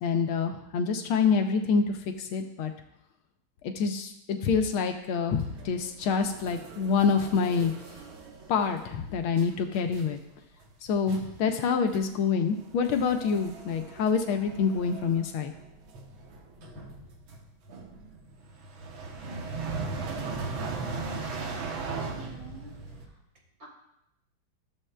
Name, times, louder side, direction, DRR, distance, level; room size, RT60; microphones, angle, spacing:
voice 1, 0.0-2.7 3.6-7.7 8.5-10.2 10.9-15.5, left 5 dB, 80° left, 5 dB, 1.5 m, -26 dB
sound 1, 5.4-9.0 9.3-9.6 9.9-10.2 10.6-10.7 11.1-11.4 11.9-12.1 12.4-23.1, right 4 dB, 70° right, 1.8 m, -39 dB
voice 2, 21.7-22.8 23.6-23.7, right 4 dB, 40° right, -4 dB, 4.1 m, -49 dB
14.0 x 7.1 x 2.2 m, 0.81 s
omnidirectional pair, 2.4 m